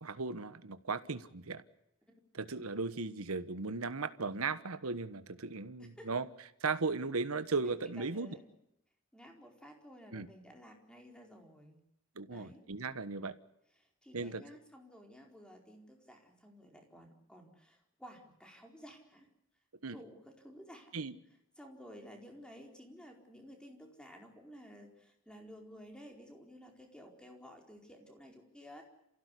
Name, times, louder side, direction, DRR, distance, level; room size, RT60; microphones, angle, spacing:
voice 1, 0.0-1.6 2.3-6.2 6.6-8.4 10.1-10.3 12.2-13.4 14.1-14.4 19.8-20.0 20.9-21.2, right 4 dB, 85° right, 1.3 m, -36 dB
voice 2, 7.6-8.5 9.1-11.8 12.3-12.6 13.8-19.3 19.9-20.9 21.6-28.8, equal, 5° left, 4.5 m, -54 dB
28.5 x 16.5 x 8.4 m
head